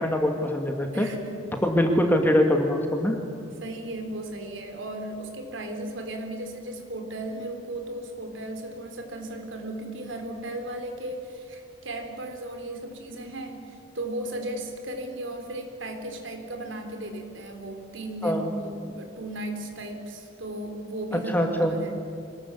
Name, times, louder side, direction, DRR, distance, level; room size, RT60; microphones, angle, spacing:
voice 1, 0.0-1.1 1.6-3.2 18.2-18.5 21.3-21.8, left 1 dB, 10° left, 3 dB, 2.2 m, -23 dB
voice 2, 0.9-1.4 3.6-22.0, right 1 dB, 65° right, 4 dB, 3.9 m, -35 dB
26.5 x 20.5 x 8.5 m, 2.5 s
head